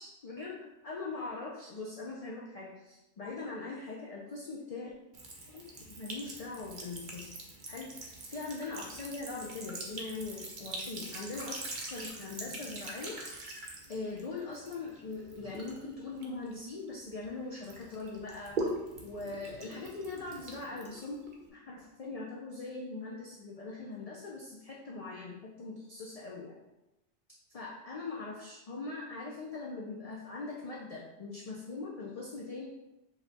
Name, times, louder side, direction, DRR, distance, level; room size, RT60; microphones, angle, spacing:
voice 1, 0.0-4.9 5.5-7.4 7.7-7.9 8.3-11.6 11.9-13.2 13.9-18.6 19.0-21.2 21.5-26.6 27.5-32.7, left 3 dB, 45° left, -3 dB, 0.5 m, -41 dB
Sink (filling or washing) / Trickle dribble, 5.1-17.3 17.6-21.5, right 2 dB, 50° right, 0.8 m, -43 dB
4.8 x 2.3 x 4.0 m, 0.95 s
omnidirectional pair, 1.2 m